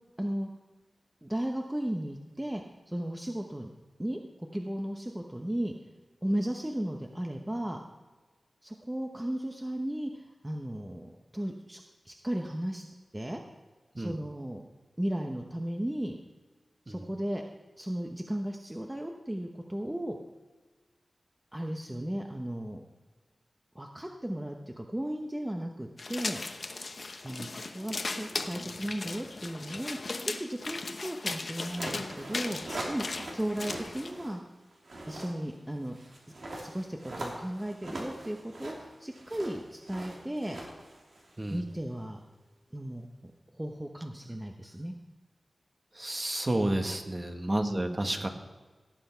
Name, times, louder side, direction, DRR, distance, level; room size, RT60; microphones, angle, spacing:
voice 1, 0.2-0.5 1.2-3.7 4.0-5.7 6.2-7.8 8.6-12.8 13.1-13.4 14.0-14.6 15.0-16.1 16.9-17.4 17.8-20.2 21.5-22.8 23.7-26.4 27.2-32.6 32.9-33.0 33.3-34.4 35.1-36.0 36.6-40.6 41.5-42.2 42.7-44.9 47.5-48.0, right 1 dB, 15° right, 2 dB, 0.9 m, -35 dB
sound 1, 26.0-34.1, left 3 dB, 55° left, 0.9 m, -37 dB
sound 2, 31.6-34.4 34.7-41.8, right 1 dB, 80° right, 2.9 m, -42 dB
voice 2, 45.9-48.3, right 1 dB, 30° right, 5 dB, 1.4 m, -31 dB
17.5 x 8.1 x 4.5 m, 1.3 s
wide cardioid pair, 80°, 0 cm